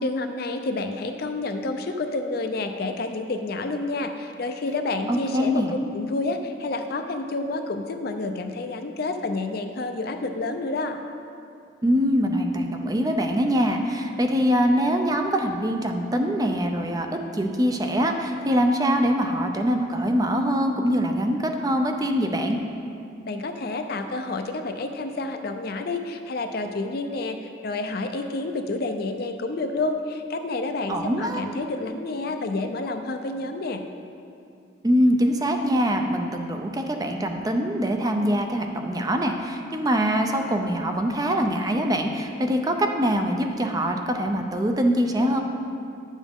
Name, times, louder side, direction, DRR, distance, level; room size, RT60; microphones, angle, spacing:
voice 1, 0.0-11.0 23.2-33.8, left 2 dB, 55° left, 6 dB, 0.5 m, -29 dB
voice 2, 5.1-5.7 11.8-22.6 30.9-31.4 34.8-45.4, equal, 20° right, 4 dB, 0.5 m, -23 dB
9.4 x 7.3 x 3.6 m, 2.4 s
head